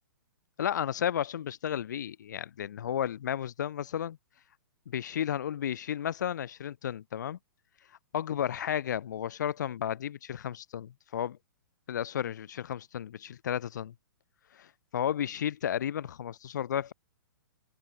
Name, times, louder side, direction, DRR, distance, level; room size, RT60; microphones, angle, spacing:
voice 1, 0.6-4.2 4.9-7.4 8.1-11.4 11.9-13.9 14.5-16.9, left 9 dB, 55° left, 6.4 m, -33 dB
figure-of-eight pair, 115°, 11 cm